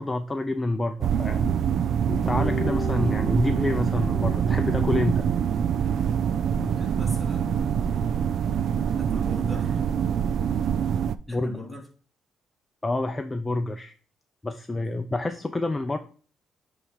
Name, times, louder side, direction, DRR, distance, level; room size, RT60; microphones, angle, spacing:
voice 1, 0.0-1.6 2.1-5.2 11.3-11.6 12.8-13.9 14.4-16.0, left 2 dB, 20° left, 7 dB, 0.6 m, -28 dB
sound 1, 1.0-11.2, right 8 dB, 65° right, 0.4 m, -25 dB
sound 2, 2.4-5.6, left 5 dB, 60° left, 1.0 m, -39 dB
voice 2, 6.5-7.9 9.0-9.8 11.3-11.9, equal, 5° right, -1 dB, 3.1 m, -40 dB
9.3 x 3.5 x 4.8 m, 0.40 s
cardioid pair, 90°, 0 cm